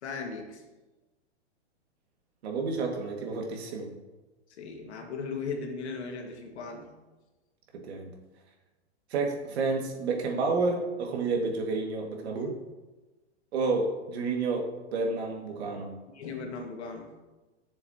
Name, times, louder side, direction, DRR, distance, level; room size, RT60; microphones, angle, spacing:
voice 1, 0.0-0.6 4.6-6.9 16.1-17.1, left 4 dB, 75° left, 3 dB, 1.8 m, -37 dB
voice 2, 2.4-3.9 7.8-8.1 9.1-12.6 13.5-16.0, right 3 dB, 65° right, 1 dB, 2.0 m, -30 dB
11.0 x 6.8 x 2.9 m, 1.1 s
hypercardioid pair, 130°, 34 cm